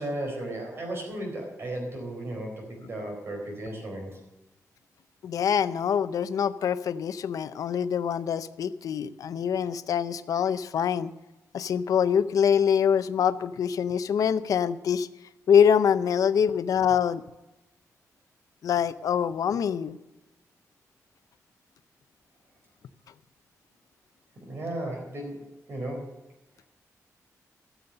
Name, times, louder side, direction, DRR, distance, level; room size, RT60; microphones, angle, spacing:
voice 1, 0.0-4.2 24.5-25.4 25.7-26.1, right 1 dB, 45° right, 1 dB, 4.3 m, -35 dB
voice 2, 5.2-11.1 11.5-15.1 15.5-17.2 18.6-20.0, left 8 dB, 75° left, 13 dB, 0.5 m, -24 dB
14.5 x 7.1 x 6.6 m, 0.96 s
wide cardioid pair, 175°, 6 cm